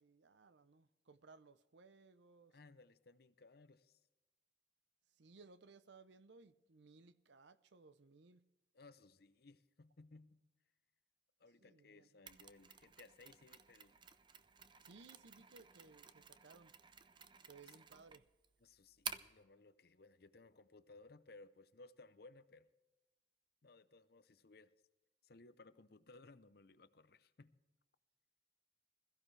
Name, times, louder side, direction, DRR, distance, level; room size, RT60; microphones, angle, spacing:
voice 1, 0.0-2.6 5.1-8.4 11.6-12.1 14.8-16.7 17.4-18.2, right 4 dB, 65° right, 0.6 m, -62 dB
voice 2, 2.5-4.0 8.7-10.4 11.4-14.0 18.6-22.7 23.6-24.7 25.2-27.5, left 3 dB, 55° left, 0.7 m, -61 dB
Mechanisms, 12.3-19.4, right 7 dB, 25° right, 0.5 m, -53 dB
21.5 x 14.5 x 3.3 m
head